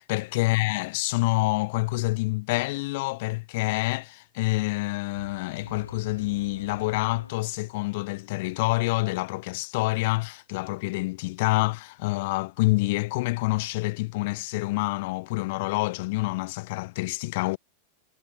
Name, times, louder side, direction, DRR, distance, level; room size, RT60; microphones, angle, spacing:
voice 1, 0.0-17.6, left 22 dB, 50° left, 1.1 m, -27 dB
sound 1, 5.1-8.2, left 3 dB, 80° left, 4.5 m, -45 dB
figure-of-eight pair, 90°, 0 cm